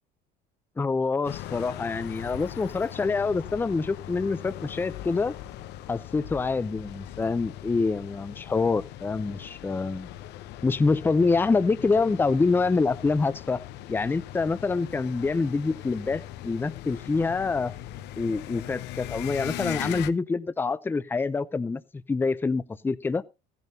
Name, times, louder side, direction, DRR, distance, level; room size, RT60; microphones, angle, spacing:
voice 1, 0.8-5.3 5.9-10.1 10.6-13.6 13.9-17.7 18.2-21.8 22.1-23.2, left 4 dB, 10° left, 0.5 m, -26 dB
sound 1, 1.2-20.1, left 13 dB, 65° left, 0.9 m, -40 dB
15.5 x 11.0 x 2.8 m
cardioid pair, 135°, 19 cm